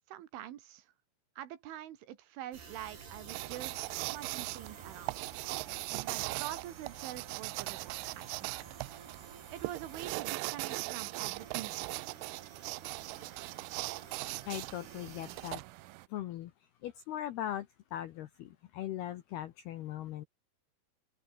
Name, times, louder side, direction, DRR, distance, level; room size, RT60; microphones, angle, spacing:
voice 1, 0.1-0.9 1.4-5.2 6.0-8.5 9.5-12.2, right 12 dB, 70° right, 4.0 m, -45 dB
sound 1, 2.5-15.5, right 6 dB, 50° right, 6.8 m, -52 dB
sound 2, 3.3-16.1, right 26 dB, 85° right, 3.3 m, -40 dB
voice 2, 14.5-15.6 16.1-16.5 16.8-20.3, left 12 dB, 75° left, 2.4 m, -39 dB
open air
omnidirectional pair, 6.0 m